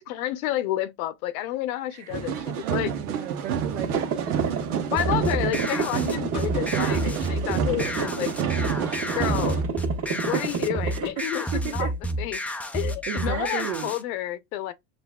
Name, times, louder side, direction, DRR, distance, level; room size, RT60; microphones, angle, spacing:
voice 1, 0.1-2.9 4.9-8.4 9.2-9.6 10.2-11.9 12.2-12.4 12.7-14.7, left 13 dB, 75° left, 0.9 m, -30 dB
voice 2, 1.9-4.9 10.3-10.5 10.8-12.0 13.1-13.9, right 12 dB, 70° right, 1.2 m, -35 dB
sound 1, 2.1-9.6, right 8 dB, 90° right, 1.1 m, -30 dB
sound 2, 3.7-11.1, right 6 dB, 30° right, 1.5 m, -30 dB
sound 3, 5.0-14.0, right 1 dB, 5° left, 0.4 m, -30 dB
6.7 x 2.5 x 2.3 m
supercardioid pair, 105°, 43 cm